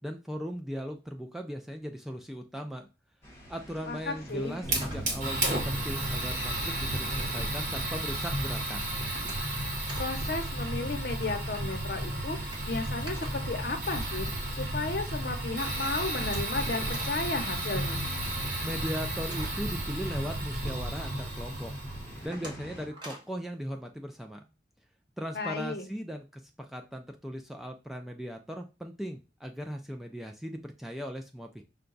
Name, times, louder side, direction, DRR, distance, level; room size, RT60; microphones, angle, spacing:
voice 1, 0.0-2.9 3.5-8.8 18.6-21.7 22.2-24.4 25.2-31.6, equal, ahead, 3 dB, 0.3 m, -38 dB
sound 1, 3.2-22.9, left 1 dB, 15° left, 1.0 m, -47 dB
voice 2, 3.9-4.6 10.0-18.1 25.3-25.9, left 3 dB, 55° left, 6 dB, 0.8 m, -34 dB
sound 2, 4.2-6.7 7.2-7.7 8.1-8.4 8.7-10.2 10.5-10.6 10.9-14.6 15.0-15.1 15.4-15.5 15.7-20.8 21.2-21.3 21.8-23.4, right 1 dB, 25° right, 1.0 m, -48 dB
Fire, 4.6-22.3, right 1 dB, 45° right, 1.3 m, -33 dB
5.6 x 2.3 x 3.8 m, 0.30 s
head